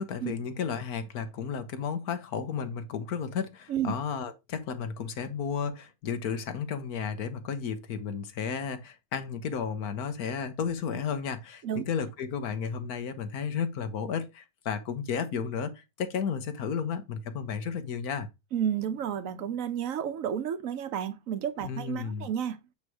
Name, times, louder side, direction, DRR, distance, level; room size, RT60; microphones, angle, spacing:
voice 1, 0.0-18.3 21.6-22.3, left 6 dB, 65° left, 1.4 m, -33 dB
voice 2, 18.5-22.6, right 9 dB, 60° right, 1.1 m, -31 dB
8.8 x 3.2 x 4.7 m
omnidirectional pair, 1.8 m